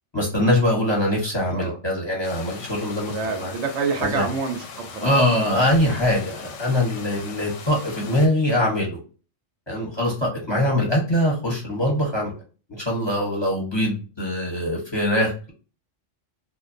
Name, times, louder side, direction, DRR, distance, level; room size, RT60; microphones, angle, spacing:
voice 1, 0.1-3.5 4.0-4.2 5.0-9.0 9.7-12.4 12.7-15.5, left 1 dB, 25° left, -2 dB, 0.7 m, -23 dB
sound 1, 2.2-8.3, left 5 dB, 90° left, 0.9 m, -40 dB
voice 2, 3.1-5.1, right 5 dB, 75° right, 4 dB, 0.8 m, -27 dB
2.5 x 2.2 x 2.4 m, 0.36 s
omnidirectional pair, 1.2 m